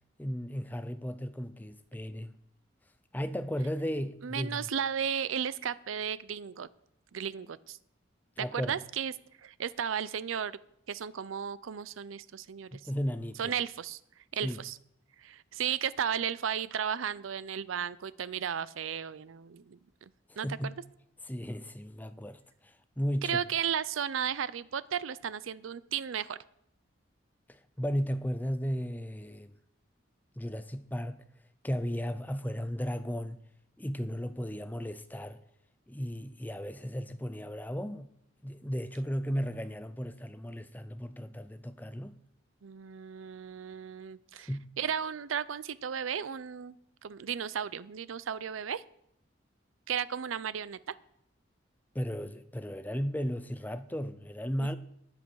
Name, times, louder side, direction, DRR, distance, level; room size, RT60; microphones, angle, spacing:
voice 1, 0.2-2.4 3.1-4.7 8.4-8.8 12.7-13.5 14.4-14.6 20.4-20.7 21.3-23.4 27.5-29.5 30.4-31.2 31.6-33.4 33.8-35.4 35.9-38.1 38.4-42.2 44.5-44.6 51.9-54.8, equal, 10° left, 0.5 m, -35 dB
voice 2, 4.2-6.7 7.1-7.8 8.4-9.1 9.4-10.6 10.9-12.8 13.4-14.0 14.3-14.8 15.2-20.1 20.4-20.7 23.2-26.4 42.6-44.5 44.8-46.7 47.0-48.8 49.9-50.9 54.6-54.7, right 8 dB, 90° right, 0.5 m, -34 dB
18.5 x 7.7 x 4.7 m
head